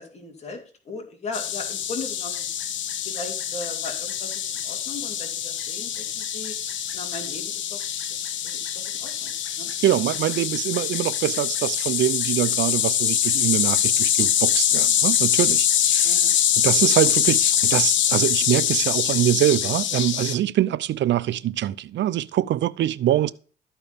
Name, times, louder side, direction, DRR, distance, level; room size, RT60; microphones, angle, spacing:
voice 1, 0.0-2.5 3.0-6.5 6.9-7.8 8.1-9.7 10.7-10.8 16.0-16.3 16.7-16.9 23.2-23.3, left 3 dB, 35° left, 2.8 m, -38 dB
sound 1, 1.3-20.4, left 10 dB, 70° left, 1.0 m, -24 dB
voice 2, 9.8-23.3, right 12 dB, 65° right, 0.6 m, -24 dB
13.5 x 4.5 x 5.2 m
cardioid pair, 90°, 20 cm